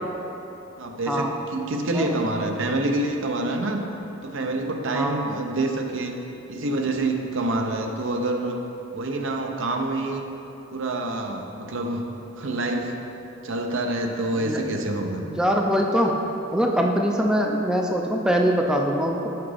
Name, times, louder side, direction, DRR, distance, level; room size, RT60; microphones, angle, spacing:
voice 1, 0.8-3.8 4.2-6.2 6.5-8.6 8.9-10.2 10.7-13.0 13.4-15.2, right 2 dB, 70° right, 3 dB, 0.6 m, -27 dB
voice 2, 4.9-5.2 14.4-14.6 15.2-16.1 16.5-19.3, equal, 5° right, 0 dB, 0.4 m, -23 dB
5.9 x 5.8 x 4.9 m, 2.9 s
head